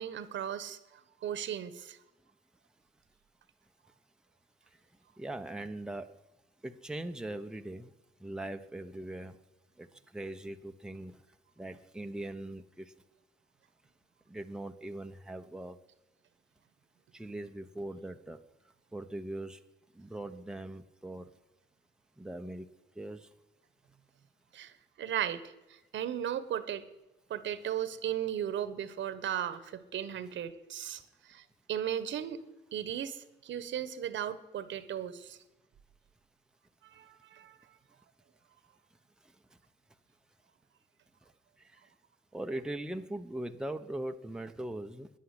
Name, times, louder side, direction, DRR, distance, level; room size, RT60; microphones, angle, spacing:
voice 1, 0.0-2.0 24.5-25.4 25.7-26.8 27.3-32.4 32.7-35.4 36.8-37.8, right 10 dB, 70° right, 13 dB, 1.3 m, -36 dB
voice 2, 5.2-6.1 6.6-7.9 8.2-9.4 9.8-9.9 10.1-11.2 11.6-12.9 14.3-15.8 17.1-18.4 18.9-19.6 19.9-21.3 22.2-22.7 23.0-23.3 42.3-45.1, right 1 dB, 5° right, 5 dB, 1.0 m, -40 dB
11.5 x 10.5 x 9.8 m, 1.0 s
cardioid pair, 90°, 20 cm